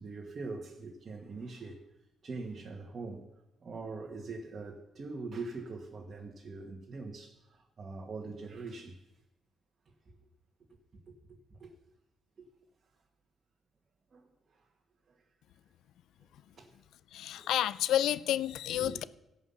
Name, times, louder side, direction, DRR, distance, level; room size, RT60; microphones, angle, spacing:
voice 1, 0.0-1.8 2.2-3.3 3.6-9.0 10.1-10.2 11.1-11.2 11.5-11.7 12.4-12.5 14.1-14.3 14.5-14.6 16.6-16.8 17.3-17.5 18.7-19.0, right 3 dB, 45° right, 1.5 m, -43 dB
voice 2, 17.1-19.0, left 11 dB, 80° left, 0.4 m, -30 dB
16.5 x 5.6 x 6.9 m
cardioid pair, 90°, 0 cm